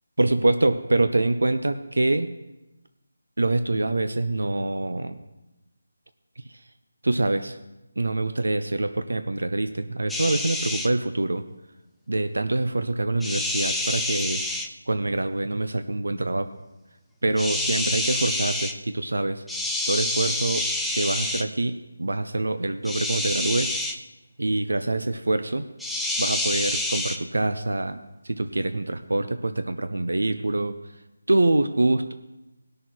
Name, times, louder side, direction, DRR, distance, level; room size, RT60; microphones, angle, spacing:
voice 1, 0.2-2.3 3.4-5.2 7.0-7.6 8.0-11.4 12.1-14.4 14.9-16.5 17.2-19.4 19.9-20.6 20.9-23.8 24.4-25.7 26.2-28.0 28.2-30.8 31.3-32.1, right 2 dB, 90° right, 9 dB, 0.6 m, -25 dB
sound 1, 10.1-10.9 13.2-14.7 17.4-18.7 19.5-21.4 22.8-24.0 25.8-27.2, left 1 dB, ahead, 0.3 m, -27 dB
17.5 x 6.4 x 4.5 m, 1.0 s
figure-of-eight pair, 170°, 0 cm